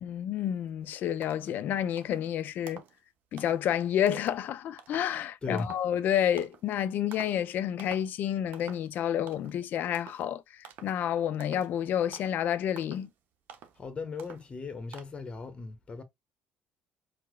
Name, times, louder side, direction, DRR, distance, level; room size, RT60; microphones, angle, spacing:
voice 1, 0.0-2.8 3.3-13.1, left 10 dB, 65° left, 0.4 m, -30 dB
sound 1, 0.8-0.9 1.2-1.6 2.0-2.3 2.7-3.0 3.4-3.7 4.1-4.4 4.8-5.1 5.6-5.9 6.4-6.7 7.1-7.4 7.8-8.2 8.5-8.9 9.3-9.6 9.9-10.3 10.6-11.0 11.4-11.7 12.1-12.4 12.8-13.1 13.5-13.8 14.2-14.5 14.9-15.0, right 7 dB, 65° right, 0.6 m, -49 dB
voice 2, 13.8-16.0, left 4 dB, 30° left, 0.9 m, -37 dB
4.6 x 2.1 x 2.2 m
supercardioid pair, 70°, 3 cm